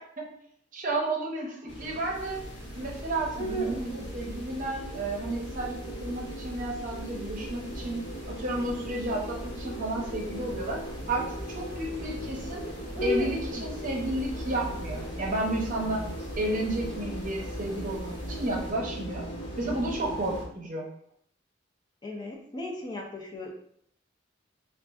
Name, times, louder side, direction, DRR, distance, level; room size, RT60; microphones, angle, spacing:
voice 1, 0.7-2.4 2.8-10.8 11.1-12.6 13.0-16.0 16.4-19.3 19.6-20.9, right 2 dB, 45° right, -1 dB, 0.7 m, -32 dB
sound 1, 1.7-20.5, equal, 65° left, 1.0 m, -38 dB
sound 2, 2.1-18.7, equal, 10° right, 1.1 m, -40 dB
voice 2, 22.0-23.5, left 2 dB, 25° left, -1 dB, 0.4 m, -38 dB
3.7 x 2.4 x 2.3 m, 0.68 s
head